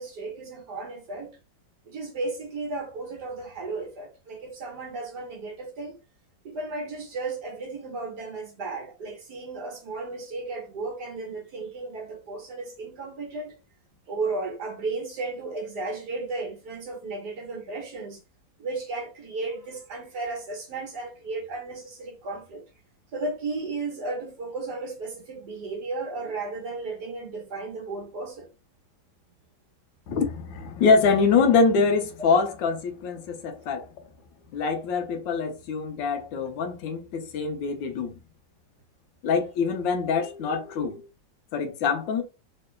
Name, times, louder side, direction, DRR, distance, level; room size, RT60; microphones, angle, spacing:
voice 1, 0.0-1.3 1.8-5.9 6.4-13.5 14.1-18.2 18.6-22.6 23.1-28.5, right 3 dB, 65° right, 1.7 m, -34 dB
voice 2, 30.1-33.9 34.5-38.2 39.2-41.1 41.5-42.2, left 5 dB, 85° left, 1.4 m, -24 dB
3.7 x 3.1 x 2.2 m
omnidirectional pair, 2.0 m